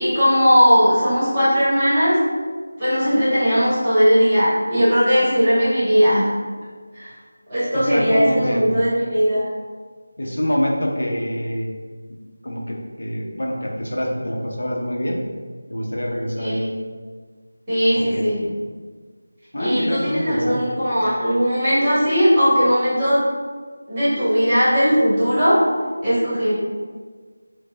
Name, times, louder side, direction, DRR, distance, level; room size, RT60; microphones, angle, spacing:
voice 1, 0.0-2.2 2.8-6.3 6.9-7.1 7.5-9.5 16.4-16.7 17.7-18.4 19.6-23.2 23.9-25.6 26.0-26.5, equal, 10° right, -12 dB, 1.0 m, -18 dB
voice 2, 7.5-8.7 10.2-11.7 12.4-15.2 15.7-16.6 17.9-18.2 19.5-20.6, equal, 65° left, 0 dB, 0.6 m, -25 dB
4.7 x 2.0 x 3.4 m, 1.5 s
figure-of-eight pair, 180°, 0 cm